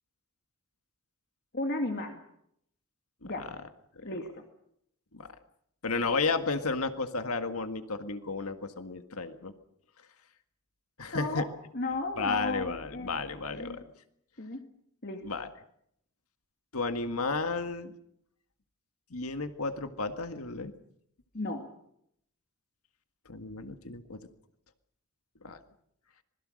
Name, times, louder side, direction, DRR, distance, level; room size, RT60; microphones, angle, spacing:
voice 1, 1.5-2.2 3.2-3.6 4.0-4.5 11.1-11.5 11.7-13.1 13.5-13.8 14.4-14.6 15.0-15.3 21.3-21.7, left 2 dB, 50° left, 4 dB, 2.2 m, -34 dB
voice 2, 5.8-9.5 11.0-11.5 12.2-13.8 15.2-15.5 16.7-17.9 19.1-20.7 23.3-24.2 25.4-25.6, left 3 dB, 85° left, 8 dB, 1.8 m, -33 dB
26.0 x 21.5 x 6.5 m, 0.72 s
head